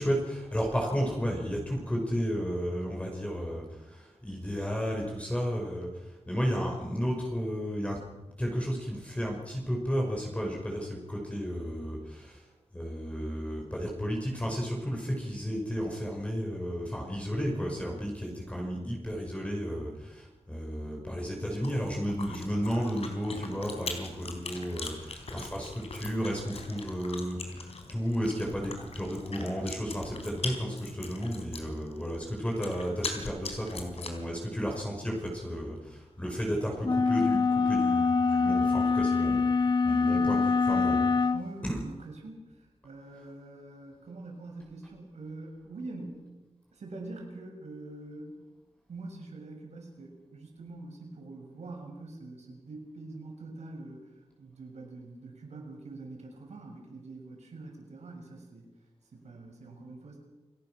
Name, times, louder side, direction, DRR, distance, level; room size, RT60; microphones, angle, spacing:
voice 1, 0.0-8.0 8.4-12.4 12.7-41.3 41.6-41.8, equal, 10° left, -1 dB, 5.4 m, -33 dB
Chewing mastication, 21.5-34.3, left 3 dB, 65° left, 3.8 m, -42 dB
sound 1, 36.8-41.5, left 4 dB, 40° left, 1.2 m, -25 dB
voice 2, 40.1-40.5 41.3-46.3 46.7-48.4 48.9-54.1 54.4-58.7 59.1-60.2, right 2 dB, 90° right, 2 dB, 6.5 m, -44 dB
28.5 x 18.5 x 6.1 m, 1.1 s
wide cardioid pair, 115°, 11 cm